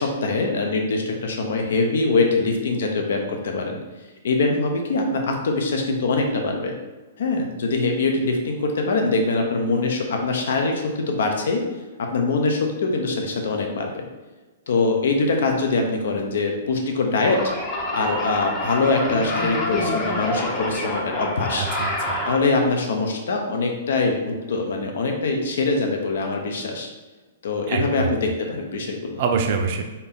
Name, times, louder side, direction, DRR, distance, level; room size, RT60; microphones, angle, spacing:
voice 1, 0.0-3.8 4.2-6.7 7.2-11.6 12.0-14.1 14.7-17.4 17.9-21.7 22.2-26.9 27.4-29.2, left 3 dB, 75° left, 2 dB, 0.8 m, -23 dB
sound 1, 17.2-22.4, left 1 dB, 15° left, 0.7 m, -27 dB
voice 2, 21.6-22.2 27.7-28.1 29.2-29.8, right 5 dB, 45° right, 4 dB, 0.5 m, -25 dB
4.1 x 2.8 x 3.6 m, 1.2 s
hypercardioid pair, 160°, 0 cm